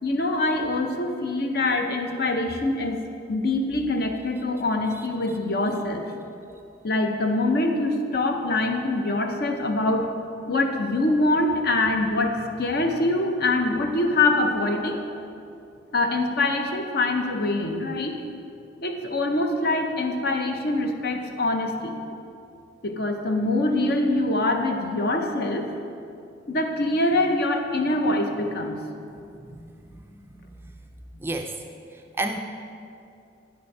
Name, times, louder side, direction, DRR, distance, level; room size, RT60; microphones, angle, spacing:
voice 1, 0.0-3.0 3.3-6.1 6.8-10.1 10.5-15.1 15.9-18.1 18.8-22.0 22.8-25.7 26.5-28.8, left 2 dB, 55° left, 5 dB, 0.7 m, -24 dB
voice 2, 31.2-31.5 32.2-32.4, right 2 dB, 10° right, 4 dB, 0.3 m, -29 dB
9.1 x 5.2 x 4.6 m, 2.6 s
head